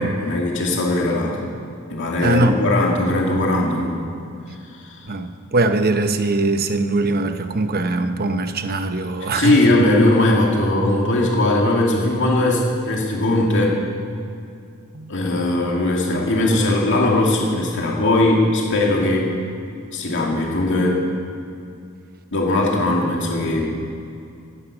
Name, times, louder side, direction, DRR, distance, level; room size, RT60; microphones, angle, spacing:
voice 1, 0.0-1.4 1.9-4.1 4.8-5.0 9.3-13.8 15.1-19.4 19.9-21.1 22.3-23.7, left 1 dB, 60° left, -1 dB, 2.3 m, -19 dB
voice 2, 2.2-2.6 5.1-9.7 14.9-15.1, right 2 dB, 45° right, 8 dB, 0.9 m, -21 dB
17.0 x 11.0 x 6.3 m, 2.5 s
head